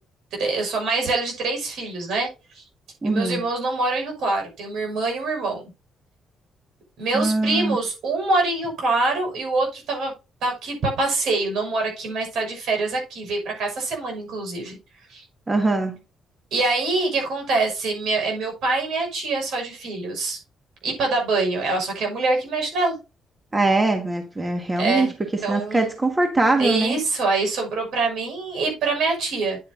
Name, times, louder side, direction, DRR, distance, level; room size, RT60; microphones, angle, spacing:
voice 1, 0.4-2.3 2.5-2.6 3.0-5.6 7.0-10.1 10.4-14.8 15.1-15.2 16.5-20.4 20.8-23.0 24.8-25.1 25.4-25.9 26.6-29.6, right 3 dB, 75° right, 6.1 m, -25 dB
voice 2, 3.0-3.4 7.1-7.8 15.5-15.9 23.5-25.1 25.5-27.0, right 2 dB, 20° right, 1.7 m, -22 dB
9.8 x 8.6 x 2.7 m
cardioid pair, 90°, 0 cm